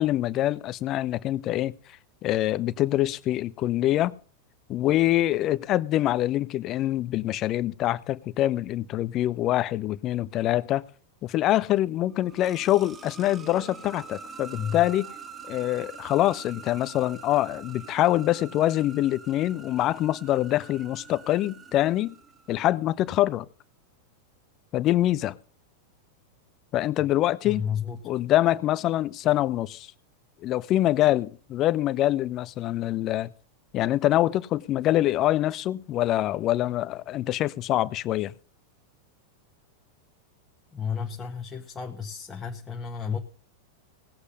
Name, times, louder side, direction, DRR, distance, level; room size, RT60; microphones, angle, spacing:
voice 1, 0.0-1.7 2.2-4.1 4.7-10.8 11.2-15.1 15.5-22.2 22.5-23.5 24.7-25.4 26.7-27.6 28.0-29.9 30.4-33.3 33.7-38.3, left 14 dB, 35° left, 0.7 m, -25 dB
sound 1, 12.0-22.8, right 5 dB, 20° right, 1.2 m, -45 dB
voice 2, 14.5-14.8 27.4-28.1 40.7-43.2, left 7 dB, 20° left, 1.5 m, -32 dB
18.0 x 8.2 x 5.4 m
figure-of-eight pair, 90°, 0 cm